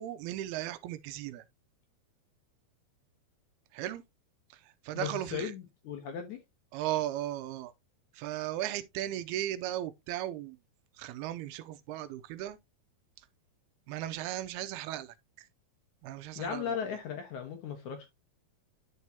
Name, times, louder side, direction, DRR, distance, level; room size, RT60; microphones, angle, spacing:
voice 1, 0.0-1.4 3.7-4.0 4.9-5.5 6.7-7.7 8.2-10.6 11.0-12.6 13.9-15.1 16.0-16.6, right 13 dB, 80° right, 2.5 m, -36 dB
voice 2, 4.9-6.4 16.4-18.1, left 7 dB, 65° left, 2.1 m, -37 dB
11.0 x 4.7 x 2.7 m
omnidirectional pair, 4.5 m